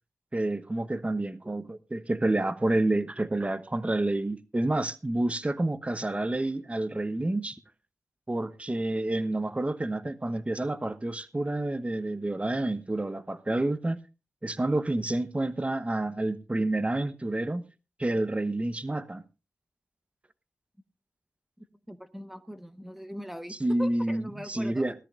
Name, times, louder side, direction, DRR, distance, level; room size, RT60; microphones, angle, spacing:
voice 1, 0.3-7.6 8.3-14.0 14.4-17.7 18.0-19.2 23.6-24.9, right 2 dB, 25° right, 1.0 m, -29 dB
voice 2, 21.9-24.9, equal, 5° right, 1.2 m, -40 dB
18.5 x 13.0 x 2.5 m
cardioid pair, 45°, 6 cm